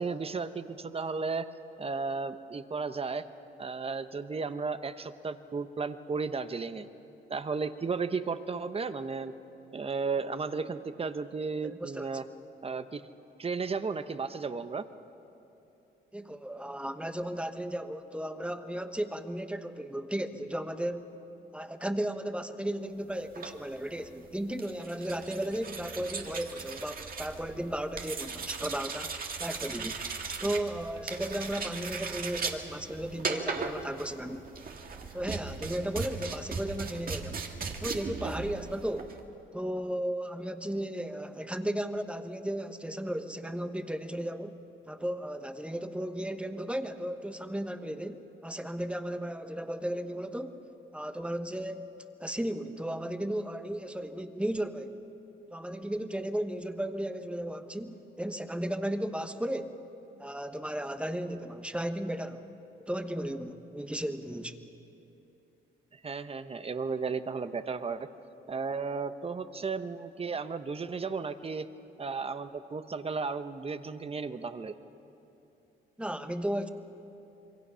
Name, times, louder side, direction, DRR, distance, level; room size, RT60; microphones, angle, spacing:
voice 1, 0.0-1.5 1.8-3.2 3.6-6.9 7.3-9.3 9.7-12.2 12.6-13.0 13.4-14.8 65.9-68.1 68.5-71.7 72.0-74.7, right 4 dB, 30° right, 11 dB, 1.0 m, -34 dB
voice 2, 11.6-12.1 16.1-21.1 21.5-29.1 29.4-30.0 30.4-34.4 35.1-37.4 37.8-39.1 39.5-44.5 44.9-50.6 50.9-51.9 52.2-55.0 55.5-59.7 60.2-62.5 62.9-64.5 76.0-76.7, right 1 dB, 5° right, 8 dB, 1.2 m, -35 dB
sound 1, 23.2-39.2, right 5 dB, 45° right, 1.9 m, -38 dB
27.0 x 23.0 x 5.7 m, 2.9 s
cardioid pair, 90°, 20 cm